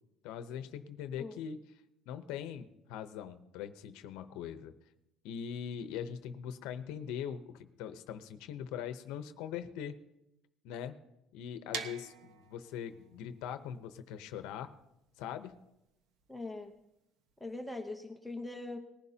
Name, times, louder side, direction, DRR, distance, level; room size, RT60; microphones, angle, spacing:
voice 1, 0.2-1.6 2.1-4.7 5.2-10.0 10.6-11.0 11.3-14.7 15.2-15.5, left 8 dB, 80° left, 10 dB, 0.8 m, -41 dB
sound 1, 11.7-17.5, right 6 dB, 70° right, 1.2 m, -46 dB
voice 2, 16.3-16.7 17.4-18.8, left 2 dB, ahead, 2 dB, 0.9 m, -41 dB
19.5 x 11.0 x 2.8 m, 0.87 s
cardioid pair, 145°, 0 cm